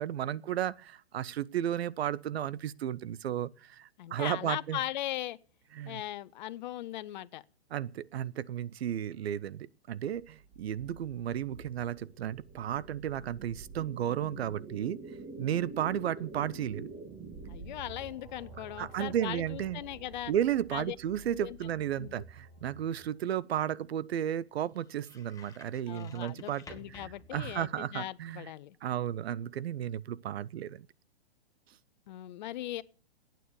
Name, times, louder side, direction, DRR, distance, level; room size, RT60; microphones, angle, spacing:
voice 1, 0.0-4.8 5.7-6.0 7.7-15.0 15.4-16.9 18.8-19.8 20.3-28.5 28.8-30.9, right 10 dB, 70° right, 0.6 m, -33 dB
voice 2, 4.0-5.4 5.9-7.4 17.4-20.3 20.7-21.0 21.3-21.6 22.0-22.2 25.9-28.8 32.1-32.8, left 14 dB, 45° left, 0.6 m, -39 dB
sound 1, 10.1-23.2, right 3 dB, 20° right, 1.8 m, -48 dB
sound 2, 22.1-28.3, left 2 dB, 10° left, 1.4 m, -57 dB
11.0 x 9.2 x 6.8 m
hypercardioid pair, 135°, 32 cm